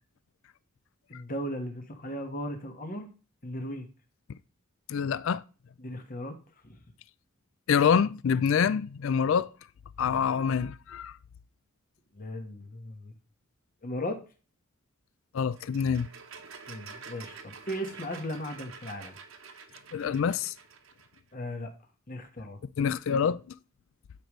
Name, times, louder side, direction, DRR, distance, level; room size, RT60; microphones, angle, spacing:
voice 1, 1.1-3.1 3.4-3.9 5.8-6.4 6.6-6.8 12.1-13.1 13.8-14.2 16.7-19.2 21.3-21.7 22.1-22.6, equal, 40° left, 1.3 m, -37 dB
voice 2, 4.9-5.4 7.7-9.5 10.0-11.1 15.3-16.1 19.9-20.5 22.8-23.4, left 7 dB, 65° left, 0.4 m, -26 dB
sound 1, 15.5-21.2, right 5 dB, 65° right, 1.0 m, -48 dB
12.0 x 5.1 x 3.1 m
head